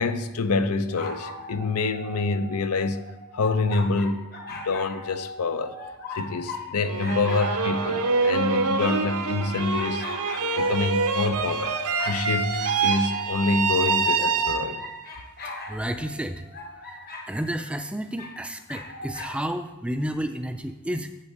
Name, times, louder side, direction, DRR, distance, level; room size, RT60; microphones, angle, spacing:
voice 1, 0.0-3.0 3.3-4.2 4.6-5.7 6.2-10.1 10.6-11.7 12.0-14.8, left 3 dB, 90° left, 0.5 m, -26 dB
sound 1, 0.9-6.7 7.0-12.2 12.6-17.3 18.2-19.4, left 2 dB, 45° left, 1.0 m, -39 dB
sound 2, 6.8-15.0, right 4 dB, 85° right, 0.8 m, -26 dB
voice 2, 15.7-16.4 17.3-21.1, right 1 dB, 5° right, 0.3 m, -31 dB
8.4 x 7.4 x 4.1 m
head